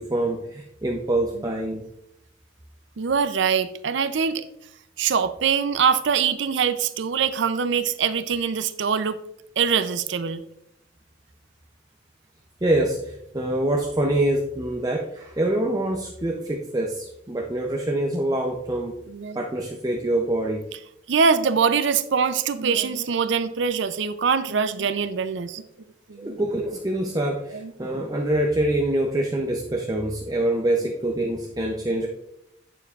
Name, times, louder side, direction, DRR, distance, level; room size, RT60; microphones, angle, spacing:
voice 1, 0.0-1.9 12.6-19.0 19.3-20.7 26.2-32.1, right 1 dB, 20° right, 1 dB, 0.5 m, -25 dB
voice 2, 3.0-4.4 5.0-9.2 9.6-10.4 19.1-19.4 21.1-25.6 26.1-26.4 27.5-27.7, right 6 dB, 65° right, 11 dB, 0.5 m, -23 dB
8.9 x 6.9 x 2.4 m, 0.79 s
head